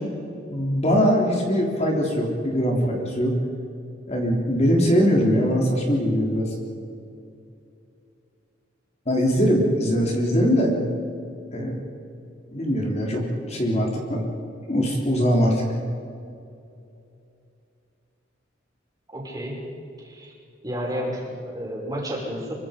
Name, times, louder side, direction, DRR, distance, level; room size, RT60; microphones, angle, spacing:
voice 1, 0.5-3.3 4.1-6.5 9.1-10.7 11.5-11.8 12.5-14.3 14.7-15.6, equal, 35° left, -1 dB, 3.5 m, -21 dB
voice 2, 19.1-19.6 20.0-20.3 20.6-22.5, equal, 20° right, -2 dB, 5.8 m, -31 dB
26.0 x 24.0 x 5.2 m, 2.6 s
head